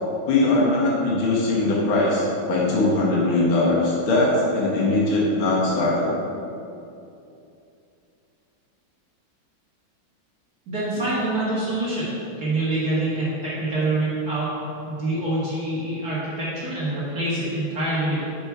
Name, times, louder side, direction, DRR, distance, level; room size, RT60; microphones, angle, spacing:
voice 1, 0.3-6.2, left 2 dB, 85° left, -4 dB, 2.0 m, -21 dB
voice 2, 10.7-12.1 12.4-14.5 14.9-18.2, right 2 dB, 50° right, -9 dB, 2.1 m, -25 dB
7.0 x 5.4 x 4.6 m, 2.7 s
omnidirectional pair, 2.2 m